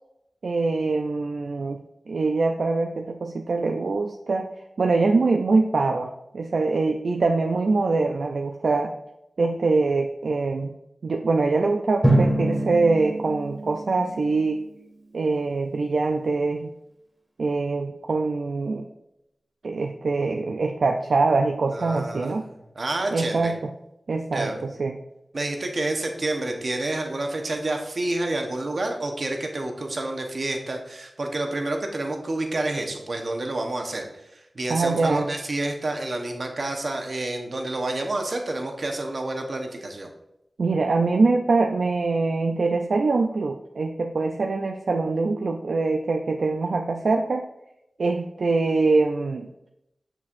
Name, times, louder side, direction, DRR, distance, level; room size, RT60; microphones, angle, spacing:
voice 1, 0.4-1.8 2.1-4.5 4.8-8.9 9.4-10.7 11.0-14.6 15.1-16.7 17.4-18.9 19.6-22.4 23.1-23.6 24.1-25.0 34.7-35.3 40.6-47.5 48.0-49.5, right 3 dB, 80° right, 3 dB, 0.4 m, -23 dB
Drum, 12.0-14.8, right 1 dB, 15° right, 1.9 m, -25 dB
voice 2, 21.7-23.5 24.3-24.7 25.3-34.1 34.3-40.1, right 2 dB, 60° right, 3 dB, 1.0 m, -29 dB
6.2 x 6.0 x 2.5 m, 0.85 s
cardioid pair, 50°, 0 cm